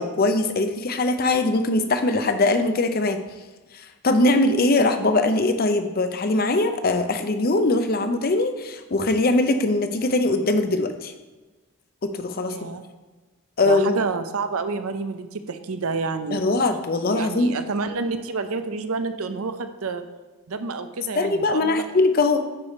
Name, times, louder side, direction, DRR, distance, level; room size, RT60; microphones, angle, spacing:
voice 1, 0.0-3.2 3.7-11.1 12.0-12.5 13.6-14.0 16.3-17.5 21.2-22.4, left 2 dB, 40° left, 8 dB, 0.6 m, -21 dB
voice 2, 12.4-12.8 13.6-16.6 17.1-20.0 20.5-21.8, right 4 dB, 70° right, 9 dB, 0.6 m, -29 dB
9.8 x 4.8 x 4.3 m, 1.2 s
head